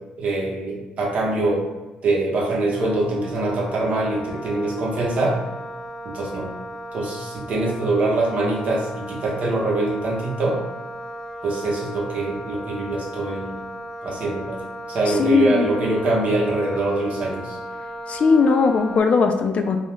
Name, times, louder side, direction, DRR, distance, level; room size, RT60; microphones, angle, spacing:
voice 1, 0.2-1.6 2.0-5.4 6.0-6.5 6.9-10.6 11.4-13.6 14.0-14.6 14.9-17.6, right 2 dB, 55° right, -2 dB, 0.7 m, -23 dB
Wind instrument woodwind instrument, 2.7-19.0, equal, 15° left, 0.7 m, -36 dB
voice 2, 15.2-15.7 18.1-19.8, left 5 dB, 50° left, 5 dB, 0.3 m, -18 dB
2.3 x 2.0 x 3.1 m, 1.2 s
supercardioid pair, 65°, 3 cm